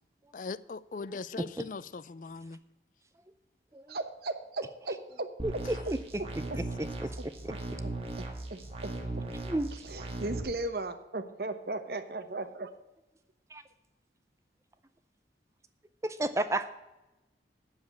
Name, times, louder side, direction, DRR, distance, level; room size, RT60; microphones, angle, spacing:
voice 1, 0.3-2.6, left 4 dB, 45° left, 0.4 m, -40 dB
voice 2, 3.9-5.3 5.9-6.0 6.2-6.6 7.8-7.9 8.2-8.9 9.8-12.7, right 2 dB, 60° right, 0.9 m, -37 dB
sound 1, 5.4-10.4, right 2 dB, 35° right, 1.6 m, -38 dB
voice 3, 16.0-16.7, right 1 dB, 15° right, 0.5 m, -31 dB
8.4 x 7.3 x 8.4 m
head